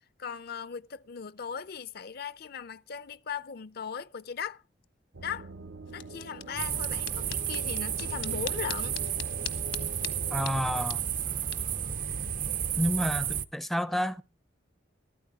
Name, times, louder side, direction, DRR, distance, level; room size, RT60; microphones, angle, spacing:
voice 1, 0.2-4.6 5.2-5.5 5.9-9.0, left 6 dB, 55° left, 0.6 m, -38 dB
sound 1, 5.1-10.9, right 3 dB, 80° right, 0.8 m, -44 dB
sound 2, 5.8-12.8, left 10 dB, 80° left, 1.2 m, -44 dB
sound 3, 6.6-13.4, right 8 dB, 45° right, 0.7 m, -32 dB
voice 2, 10.3-11.0 12.8-14.2, equal, ahead, 0.5 m, -29 dB
14.0 x 13.0 x 3.6 m
head